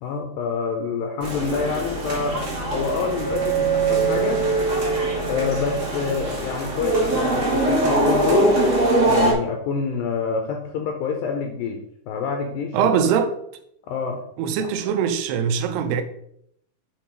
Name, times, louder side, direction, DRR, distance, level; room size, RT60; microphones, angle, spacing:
voice 1, 0.0-2.4 2.7-4.4 5.3-8.6 9.1-11.8 12.1-13.1 13.9-14.2 14.6-14.7, left 5 dB, 75° left, 2.3 m, -27 dB
sound 1, 1.2-9.3, right 2 dB, 40° right, 1.1 m, -22 dB
Bowed string instrument, 2.0-6.5, right 8 dB, 65° right, 2.8 m, -36 dB
voice 2, 12.7-13.3 14.4-16.0, right 7 dB, 90° right, 2.8 m, -22 dB
7.0 x 4.6 x 4.5 m
omnidirectional pair, 4.5 m